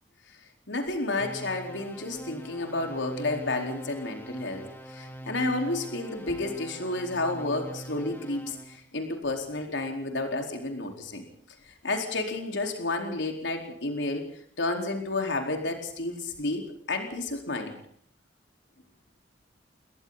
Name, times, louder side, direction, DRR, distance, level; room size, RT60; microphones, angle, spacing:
voice 1, 0.7-11.2 11.7-14.3 14.6-17.8, left 2 dB, 85° left, 3 dB, 4.3 m, -31 dB
sound 1, 1.2-8.8, right 1 dB, 10° left, 2.8 m, -43 dB
30.0 x 22.5 x 4.1 m, 0.63 s
head